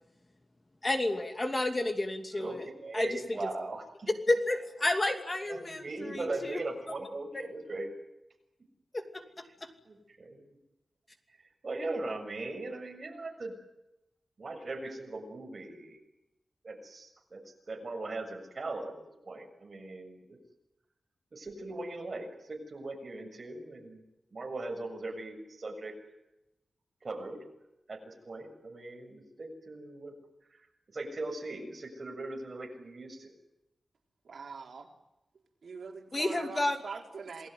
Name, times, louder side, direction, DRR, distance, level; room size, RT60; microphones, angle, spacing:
voice 1, 0.8-2.6 2.9-3.2 4.3-6.6 7.3-7.5 8.9-9.7 36.1-36.8, left 2 dB, 25° left, 6 dB, 2.6 m, -31 dB
voice 2, 2.4-4.1 5.5-7.9 9.9-10.6 11.6-13.5 14.4-16.0 16.6-17.4 17.7-18.9 19.2-20.4 21.3-24.0 24.3-25.9 27.0-27.4 27.9-30.1 30.5-30.7 30.9-33.3, right 2 dB, 40° right, 3 dB, 6.9 m, -39 dB
voice 3, 34.3-34.9 35.6-37.5, right 5 dB, 75° right, 2 dB, 4.1 m, -43 dB
28.5 x 20.0 x 9.3 m, 0.91 s
wide cardioid pair, 155°, 0 cm